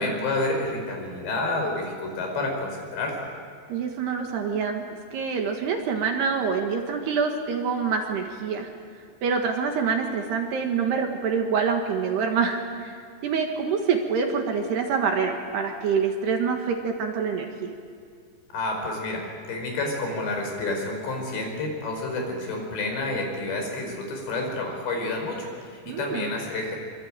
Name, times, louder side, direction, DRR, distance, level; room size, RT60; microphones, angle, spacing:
voice 1, 0.0-3.1 18.5-26.8, left 2 dB, 60° left, 2 dB, 7.2 m, -29 dB
voice 2, 3.7-8.7 9.2-12.9 13.2-17.7 25.9-26.3, right 6 dB, 65° right, 3 dB, 3.4 m, -26 dB
25.5 x 24.0 x 9.0 m, 2.2 s
omnidirectional pair, 5.7 m